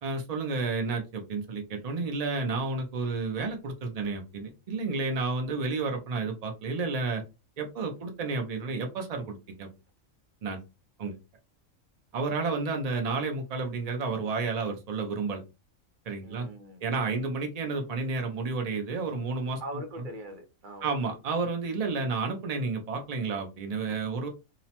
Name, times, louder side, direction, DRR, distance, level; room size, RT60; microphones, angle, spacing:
voice 1, 0.0-7.2 7.6-9.7 10.4-10.6 11.0-11.2 12.1-15.4 16.1-16.5 16.8-19.6 20.0-20.1 20.8-24.3, right 4 dB, 90° right, 0.3 m, -31 dB
voice 2, 16.2-16.8 17.1-17.3 19.6-21.0, right 1 dB, 50° right, 0.6 m, -42 dB
2.8 x 2.0 x 2.8 m
omnidirectional pair, 1.4 m